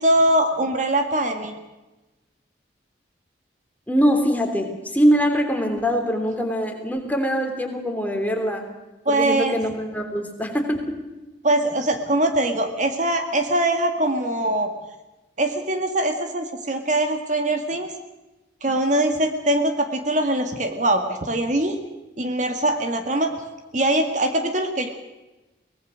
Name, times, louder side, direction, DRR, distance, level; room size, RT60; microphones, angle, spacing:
voice 1, 0.0-1.6 9.1-9.6 11.4-14.7 15.4-17.9 18.6-21.8 22.2-23.3 23.7-24.9, right 1 dB, 45° right, 6 dB, 2.0 m, -22 dB
voice 2, 3.9-8.7 9.1-11.1, equal, 10° left, 3 dB, 3.3 m, -23 dB
23.5 x 19.5 x 6.4 m, 1.1 s
head